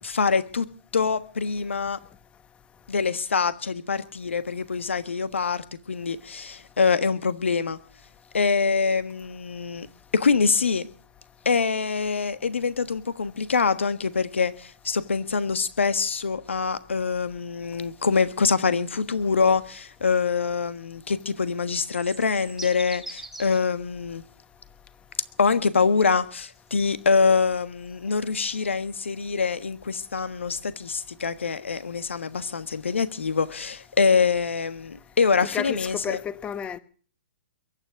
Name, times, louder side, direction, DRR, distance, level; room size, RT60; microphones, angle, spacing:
voice 1, 0.0-0.7 0.9-2.0 2.9-7.8 8.3-9.9 10.1-10.9 11.4-24.2 25.4-36.2, left 5 dB, 80° left, 1.4 m, -24 dB
sound 1, 18.3-18.7 19.0-19.2 19.6-19.7 20.3-20.4 20.7-20.8 21.4-23.7 24.1-24.2 25.1-25.2 26.2-27.5 27.8-28.2, right 2 dB, 5° right, 2.4 m, -43 dB
voice 2, 35.5-36.8, left 8 dB, 15° left, 1.2 m, -31 dB
22.5 x 9.8 x 6.4 m
hypercardioid pair, 130°, 6 cm